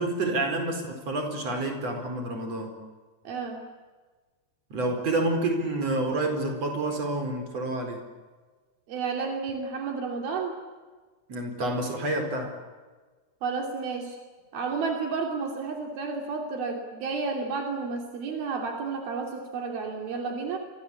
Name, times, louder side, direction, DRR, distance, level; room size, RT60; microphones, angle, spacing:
voice 1, 0.0-2.8 4.7-8.0 11.3-12.6, right 2 dB, 45° right, 6 dB, 5.6 m, -28 dB
voice 2, 3.2-3.7 8.9-10.5 13.4-14.2 14.5-20.6, right 4 dB, 80° right, 2 dB, 4.7 m, -31 dB
29.0 x 24.0 x 8.5 m, 1.4 s
omnidirectional pair, 4.2 m